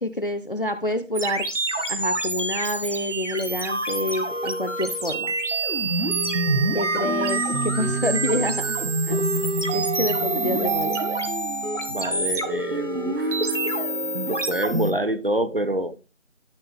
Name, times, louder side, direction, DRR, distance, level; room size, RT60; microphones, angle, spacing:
voice 1, 0.0-1.4 1.9-5.3 6.7-8.8 9.1-9.2 9.7-11.0, left 1 dB, 45° left, 0.6 m, -27 dB
sound 1, 1.2-14.9, right 2 dB, 70° right, 1.6 m, -26 dB
voice 2, 11.9-13.8 14.3-16.0, right 1 dB, 50° right, 0.7 m, -27 dB
12.5 x 4.9 x 3.4 m
figure-of-eight pair, 175°, 38 cm